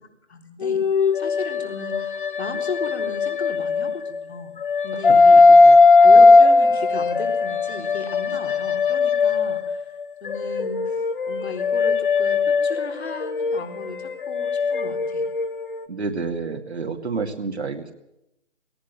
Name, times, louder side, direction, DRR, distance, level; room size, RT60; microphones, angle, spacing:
voice 1, 0.3-0.8 1.1-4.5 4.8-5.4 6.0-9.9 10.2-11.0 11.3-15.3, left 2 dB, 65° left, 4 dB, 4.0 m, -35 dB
sound 1, 0.6-4.2 4.6-9.8 10.3-15.8, left 3 dB, 45° left, 1.4 m, -18 dB
voice 2, 5.1-5.8 15.9-17.9, right 4 dB, 65° right, 3 dB, 2.5 m, -30 dB
18.0 x 18.0 x 9.1 m, 0.87 s
figure-of-eight pair, 150°, 35 cm